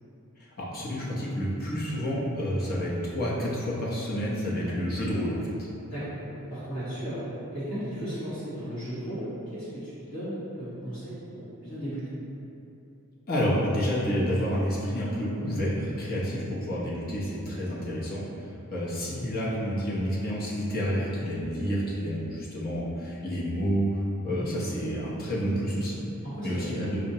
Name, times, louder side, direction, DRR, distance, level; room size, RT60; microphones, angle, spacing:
voice 1, 0.6-5.5 13.3-18.2 18.7-26.0 26.4-27.0, equal, 45° left, -6 dB, 0.7 m, -29 dB
voice 2, 5.9-7.2 7.5-12.0 16.2-16.4 24.2-24.5 25.8-25.9 26.2-26.8, equal, 65° left, -14 dB, 1.2 m, -36 dB
5.0 x 2.1 x 2.7 m, 2.8 s
head